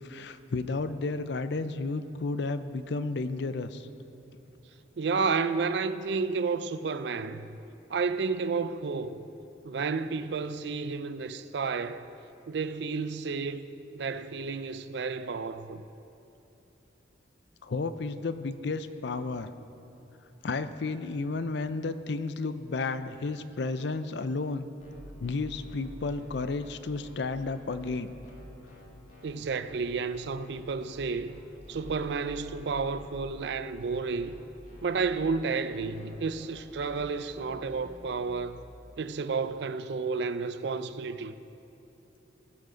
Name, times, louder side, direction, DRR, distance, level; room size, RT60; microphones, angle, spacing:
voice 1, 0.1-3.9 17.6-19.5 20.4-24.7 25.2-28.1, left 3 dB, 60° left, 0.5 m, -32 dB
voice 2, 5.0-7.4 7.9-9.3 9.6-12.1 12.5-13.7 13.9-15.8 29.2-31.3 31.7-34.3 34.8-38.6 39.0-41.3, right 4 dB, 60° right, 0.4 m, -31 dB
sound 1, 24.8-38.3, equal, 45° left, 2.7 m, -50 dB
18.0 x 6.6 x 5.0 m
head